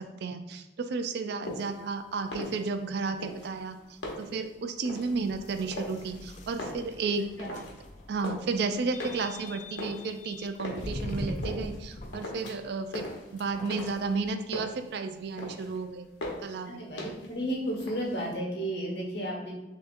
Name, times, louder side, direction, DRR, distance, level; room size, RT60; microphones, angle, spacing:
voice 1, 0.0-7.6 8.1-13.1 13.3-16.1 16.4-16.8, right 4 dB, 60° right, 8 dB, 0.3 m, -33 dB
sound 1, 1.4-1.8 2.2-2.9 3.2-4.4 4.8-5.2 5.7-6.2 6.5-7.8 8.0-8.6 9.0-10.9 11.4-11.8 12.1-12.7 12.9-14.1 14.4-14.9 15.2-15.8 16.2-16.6 17.0-17.4 17.7-18.3, left 1 dB, 85° left, 1.0 m, -39 dB
sound 2, 5.0-14.3, left 1 dB, 40° left, 0.4 m, -42 dB
voice 2, 16.6-19.5, equal, 60° left, -1 dB, 1.3 m, -33 dB
6.0 x 2.7 x 2.5 m, 1.0 s
head